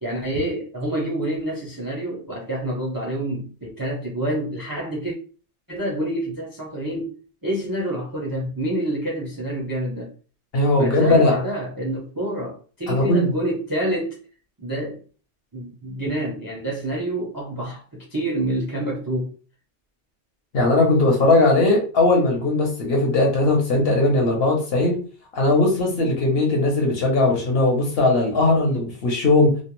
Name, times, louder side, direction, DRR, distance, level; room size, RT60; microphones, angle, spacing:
voice 1, 0.0-5.2 5.7-7.1 7.4-10.1 10.8-14.2 14.6-15.0 15.5-19.3, right 1 dB, 30° right, 0.4 m, -27 dB
voice 2, 10.5-11.3 12.9-13.3 20.5-25.0 25.3-29.6, left 2 dB, 60° left, 1.0 m, -19 dB
2.4 x 2.1 x 3.0 m
omnidirectional pair, 1.2 m